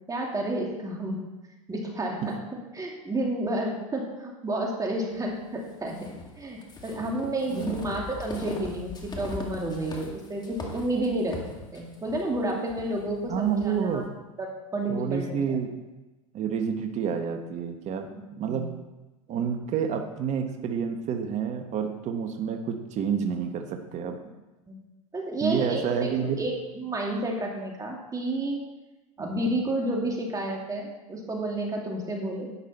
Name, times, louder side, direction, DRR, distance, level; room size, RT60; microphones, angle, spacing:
voice 1, 0.1-1.2 1.7-2.4 2.7-6.1 6.4-11.4 11.7-14.0 14.4-15.6 18.4-18.6 24.7-24.8 25.1-26.1 26.4-28.6 29.2-32.5, right 1 dB, 20° right, -1 dB, 2.5 m, -30 dB
sound 1, 5.9-13.8, left 3 dB, 25° left, 2.1 m, -40 dB
voice 2, 7.5-7.9 13.3-14.1 14.9-15.7 16.3-18.1 18.4-18.7 19.3-24.2 25.4-26.4 29.2-29.7, right 7 dB, 40° right, 6 dB, 1.3 m, -29 dB
11.5 x 9.7 x 4.3 m, 1.1 s
hypercardioid pair, 90°, 18 cm